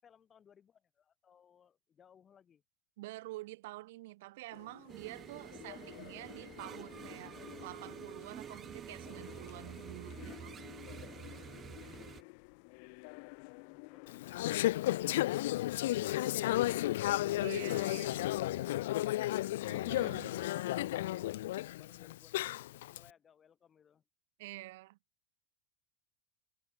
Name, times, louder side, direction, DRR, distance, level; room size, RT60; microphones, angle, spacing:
voice 1, 0.0-2.6 21.7-24.0, left 8 dB, 20° left, 6.9 m, -64 dB
voice 2, 3.0-10.6 17.4-18.2 19.7-20.4 24.4-25.0, right 19 dB, 70° right, 2.2 m, -48 dB
sound 1, 4.5-14.5, left 40 dB or more, 55° left, 3.1 m, -52 dB
sound 2, 4.9-12.2, right 8 dB, 25° right, 0.7 m, -49 dB
Conversation / Chatter, 14.1-23.0, left 15 dB, 85° left, 0.9 m, -33 dB
supercardioid pair, 155°, 0 cm